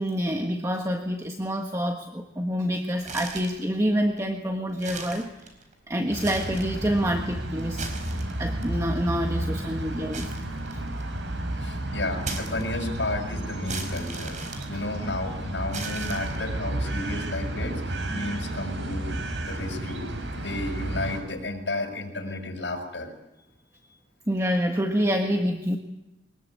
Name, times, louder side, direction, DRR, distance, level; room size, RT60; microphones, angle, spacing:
voice 1, 0.0-5.3 5.9-7.8 8.4-10.3 24.3-25.8, equal, 15° right, 3 dB, 1.4 m, -27 dB
sound 1, 3.0-3.7 4.2-4.3 4.7-5.7 6.1-6.8 7.6-8.6 10.1-11.2 12.2-13.0 13.7-15.2 15.7-16.6, right 4 dB, 45° right, 4.6 m, -38 dB
sound 2, 6.1-21.2, right 1 dB, 85° right, 5.4 m, -32 dB
voice 2, 11.6-14.4 14.7-20.0 20.4-23.1, left 2 dB, 85° left, 5 dB, 6.1 m, -32 dB
23.5 x 20.5 x 8.6 m, 1.0 s
head